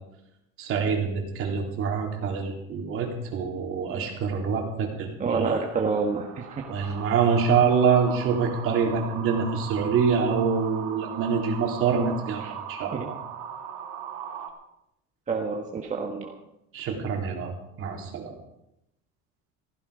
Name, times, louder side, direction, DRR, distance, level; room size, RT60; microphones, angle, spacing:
voice 1, 0.6-5.6 6.7-13.2 16.7-18.3, right 6 dB, 45° right, 1 dB, 3.8 m, -26 dB
voice 2, 5.2-6.6 12.4-12.5 12.9-13.1 15.3-16.3, right 4 dB, 25° right, 1 dB, 1.4 m, -28 dB
sound 1, 5.3-14.5, right 8 dB, 70° right, 2.6 m, -39 dB
15.5 x 15.5 x 5.1 m, 0.82 s
cardioid pair, 155°, 29 cm